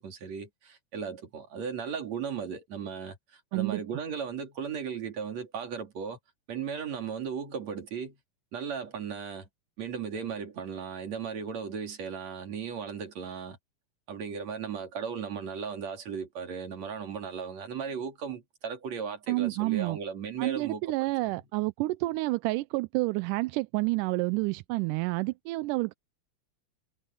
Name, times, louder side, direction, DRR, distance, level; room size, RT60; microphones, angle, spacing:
voice 1, 0.0-6.2 6.5-8.2 8.5-9.5 9.8-13.6 14.1-20.8, right 6 dB, 55° right, 4.0 m, -36 dB
voice 2, 19.3-20.0 20.4-25.9, right 22 dB, 90° right, 2.1 m, -29 dB
omnidirectional pair, 3.6 m